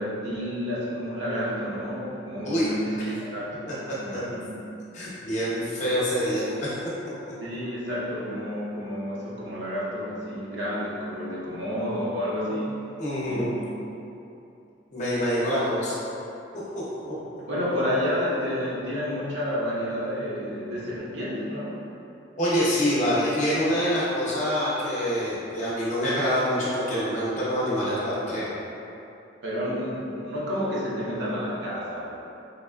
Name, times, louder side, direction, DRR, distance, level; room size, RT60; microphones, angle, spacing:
voice 1, 0.0-4.6 7.4-12.8 13.3-13.8 17.5-21.8 29.4-32.1, equal, 65° right, -7 dB, 0.9 m, -30 dB
voice 2, 4.9-6.7 13.0-13.6 14.9-15.9 16.5-17.2 22.4-28.5, equal, 40° left, -8 dB, 0.9 m, -26 dB
3.9 x 3.5 x 2.3 m, 2.8 s
head